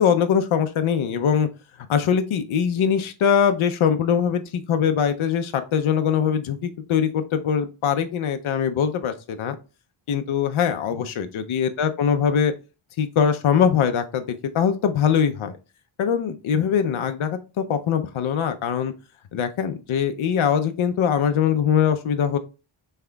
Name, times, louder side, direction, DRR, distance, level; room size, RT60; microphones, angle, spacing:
voice 1, 0.0-1.5 1.8-9.6 10.1-12.5 13.0-15.6 16.0-18.9 19.3-22.4, left 7 dB, 75° left, 8 dB, 0.6 m, -22 dB
5.6 x 3.5 x 2.2 m, 0.31 s
wide cardioid pair, 135°, 49 cm